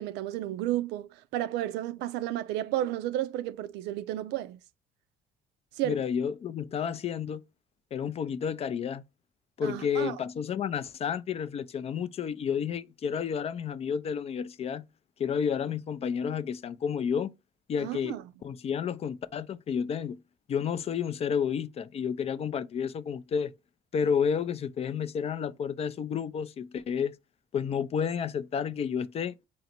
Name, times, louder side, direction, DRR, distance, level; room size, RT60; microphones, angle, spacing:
voice 1, 0.0-4.6 5.8-6.0 9.6-10.2 17.8-18.2, right 13 dB, 85° right, 0.4 m, -32 dB
voice 2, 5.8-7.4 7.9-9.0 9.6-14.8 15.2-17.3 17.7-18.2 18.4-20.2 20.5-23.5 23.9-27.2 27.5-29.5, left 7 dB, 35° left, 0.4 m, -31 dB
3.8 x 2.0 x 4.3 m
cardioid pair, 110°, 17 cm